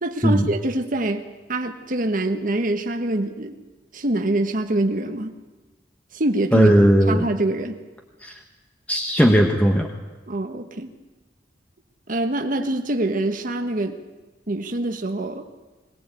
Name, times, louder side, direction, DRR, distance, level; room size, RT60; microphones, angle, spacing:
voice 1, 0.0-3.6 3.9-5.4 6.1-6.7 7.1-7.8 10.3-10.9 12.1-14.0 14.5-15.4, right 1 dB, 50° right, 6 dB, 1.4 m, -25 dB
voice 2, 6.5-7.3 8.2-8.4 8.9-9.9, equal, 10° left, 2 dB, 1.2 m, -17 dB
21.5 x 18.5 x 8.3 m, 1.2 s
head